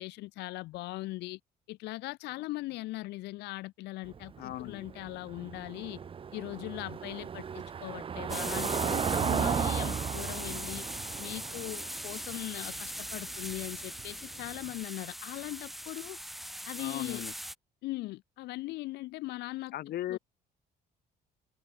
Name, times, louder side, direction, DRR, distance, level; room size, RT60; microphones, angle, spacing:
voice 1, 0.0-1.4 1.7-6.0 6.3-10.8 11.2-16.2 16.6-17.2 17.8-19.8 20.1-20.2, left 19 dB, 85° left, 3.1 m, -40 dB
Car passing by / Engine, 4.0-14.7, right 7 dB, 30° right, 0.8 m, -35 dB
voice 2, 4.4-4.8 16.8-17.3 19.7-20.2, left 13 dB, 65° left, 1.9 m, -37 dB
sound 1, 8.3-17.5, equal, ahead, 0.8 m, -40 dB
cardioid pair, 110°, 17 cm